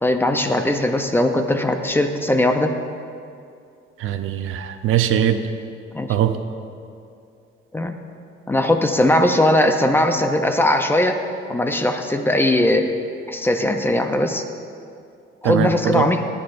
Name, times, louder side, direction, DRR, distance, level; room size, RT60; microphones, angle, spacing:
voice 1, 0.0-2.7 5.9-6.2 7.7-7.9 8.5-11.2 11.5-12.9 13.3-14.4 15.4-16.2, left 1 dB, 10° left, 6 dB, 0.5 m, -19 dB
voice 2, 4.0-5.4 6.1-6.4 15.4-16.1, right 10 dB, 80° right, 8 dB, 0.6 m, -21 dB
17.0 x 9.7 x 2.5 m, 2.5 s
cardioid pair, 140°, 21 cm